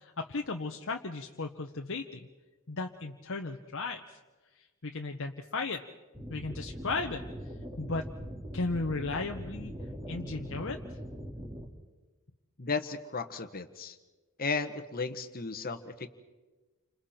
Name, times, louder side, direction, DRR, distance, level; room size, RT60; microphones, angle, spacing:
voice 1, 0.0-2.2 2.7-4.2 4.8-5.8 6.3-7.2 7.8-8.1 8.5-9.7 10.1-10.8, left 3 dB, 60° left, 3 dB, 1.1 m, -35 dB
sound 1, 6.1-11.7, equal, 15° right, 2.6 m, -41 dB
voice 2, 12.6-14.0 14.4-16.1, left 4 dB, 45° left, 9 dB, 1.4 m, -34 dB
29.5 x 27.0 x 4.4 m, 1.2 s
head